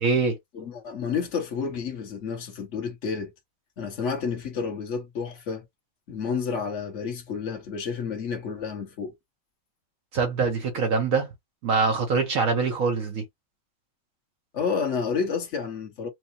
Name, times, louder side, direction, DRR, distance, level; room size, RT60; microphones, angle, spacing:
voice 1, 0.0-0.4 10.1-11.3 11.6-13.2, right 4 dB, 65° right, 1.2 m, -24 dB
voice 2, 0.5-3.3 3.8-5.7 6.1-9.1 14.5-16.1, left 6 dB, 55° left, 1.5 m, -30 dB
4.6 x 2.1 x 2.8 m
omnidirectional pair, 1.6 m